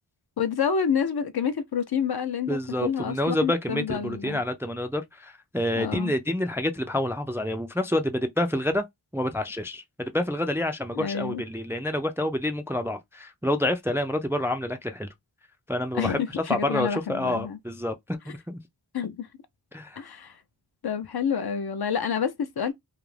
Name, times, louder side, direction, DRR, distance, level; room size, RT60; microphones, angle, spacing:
voice 1, 0.4-4.4 5.8-6.1 11.0-11.4 15.9-17.6 18.9-19.3 20.0-20.4 20.8-22.7, left 7 dB, 55° left, 0.5 m, -28 dB
voice 2, 2.5-8.8 9.1-15.1 15.7-18.6 19.7-20.0, left 1 dB, 5° right, 0.3 m, -28 dB
2.4 x 2.1 x 3.1 m
wide cardioid pair, 40°, 45 cm